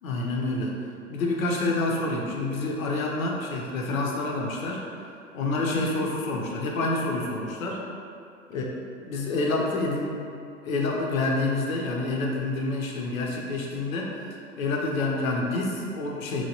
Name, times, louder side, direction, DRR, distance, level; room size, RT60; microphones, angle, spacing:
voice 1, 0.0-0.7 1.1-7.8 8.5-8.6 9.0-10.2 10.6-14.1 14.6-16.5, left 2 dB, 85° left, -1 dB, 0.6 m, -28 dB
2.9 x 2.2 x 2.8 m, 2.5 s
hypercardioid pair, 95°, 40 cm